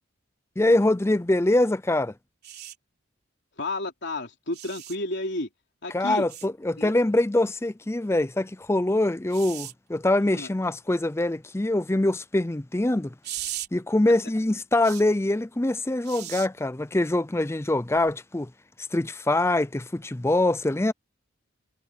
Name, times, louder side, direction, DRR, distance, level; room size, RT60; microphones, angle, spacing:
voice 1, 0.6-2.1 5.9-13.1 13.7-18.5 18.9-20.9, left 1 dB, 10° left, 0.5 m, -24 dB
sound 1, 2.4-2.7 4.5-5.0 6.3-6.5 9.3-9.7 13.2-13.7 14.8-15.0 16.0-16.5 17.9-18.1, right 12 dB, 50° right, 3.6 m, -37 dB
voice 2, 3.6-5.5 5.8-6.3 6.8-6.9 10.3-10.5, left 2 dB, 55° left, 3.7 m, -31 dB
head